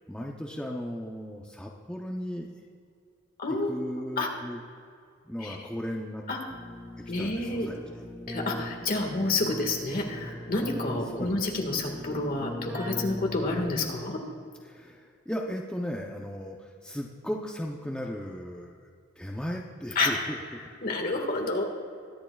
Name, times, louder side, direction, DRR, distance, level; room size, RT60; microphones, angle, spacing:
voice 1, 0.1-2.5 3.5-4.6 5.2-6.2 7.2-7.8 11.1-11.6 14.6-16.6 16.8-18.7 19.2-20.4, equal, 5° left, -1 dB, 0.7 m, -36 dB
voice 2, 3.4-3.7 4.2-4.3 5.4-5.6 6.3-6.4 7.1-7.7 8.3-14.2 20.0-20.1 20.8-21.6, left 2 dB, 45° left, 1 dB, 1.8 m, -29 dB
Keyboard (musical), 6.5-14.1, left 1 dB, 10° right, 1.6 m, -40 dB
22.5 x 11.0 x 2.4 m, 2.3 s
head